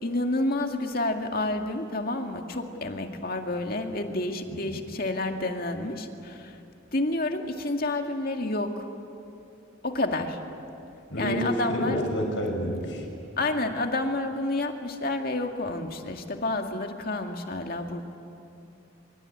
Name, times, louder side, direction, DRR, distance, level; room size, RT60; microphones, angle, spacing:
voice 1, 0.0-6.6 6.9-8.9 9.8-10.4 11.2-12.0 13.4-18.0, left 2 dB, 50° left, 4 dB, 2.1 m, -29 dB
voice 2, 4.5-4.8 11.1-13.0, equal, 65° left, 2 dB, 5.9 m, -29 dB
25.0 x 24.0 x 9.9 m, 2.7 s
head